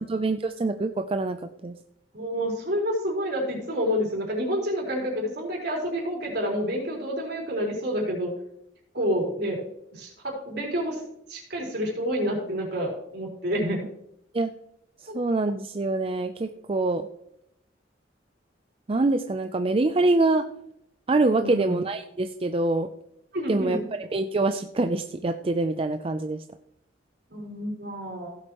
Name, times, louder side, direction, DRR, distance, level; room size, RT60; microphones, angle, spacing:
voice 1, 0.0-1.4 1.6-1.8 13.6-13.7 14.3-14.5 15.1-17.1 18.9-20.5 21.1-22.9 23.5-23.8 24.1-26.4, right 2 dB, 30° right, 8 dB, 0.5 m, -25 dB
voice 2, 2.1-8.3 8.9-9.6 9.9-11.0 11.3-13.8 15.1-15.2 21.4-21.8 23.3-23.9 27.3-28.4, equal, 65° right, -2 dB, 4.2 m, -29 dB
16.5 x 7.7 x 3.0 m, 0.76 s
head